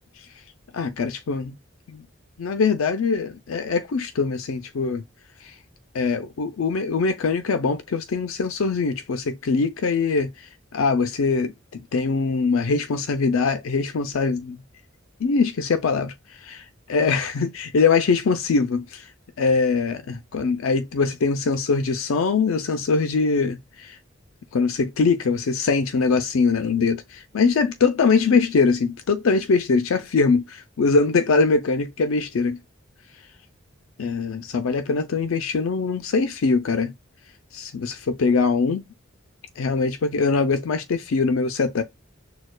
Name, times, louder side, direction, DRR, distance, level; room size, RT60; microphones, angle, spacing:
voice 1, 0.7-1.6 1.9-2.0 2.4-5.0 5.4-5.5 5.9-14.6 15.2-19.1 19.4-24.0 24.5-32.6 34.0-36.9 37.5-38.8 39.6-41.8, left 4 dB, 80° left, 0.5 m, -22 dB
6.3 x 2.3 x 2.2 m
head